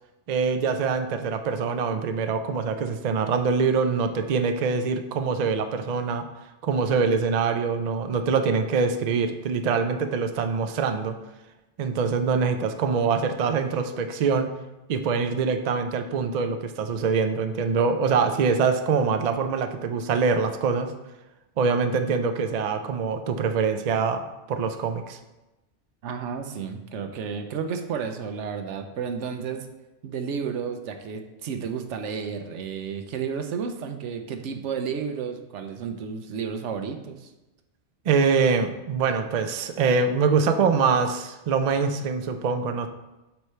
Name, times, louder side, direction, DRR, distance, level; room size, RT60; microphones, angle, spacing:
voice 1, 0.3-6.3 6.6-11.2 11.8-14.5 14.9-20.9 21.6-24.2 24.5-25.2 38.1-42.9, right 5 dB, 55° right, 7 dB, 0.4 m, -24 dB
voice 2, 26.0-29.7 30.0-37.3, right 6 dB, 90° right, 7 dB, 1.0 m, -32 dB
8.0 x 3.1 x 4.3 m, 1.0 s
omnidirectional pair, 1.2 m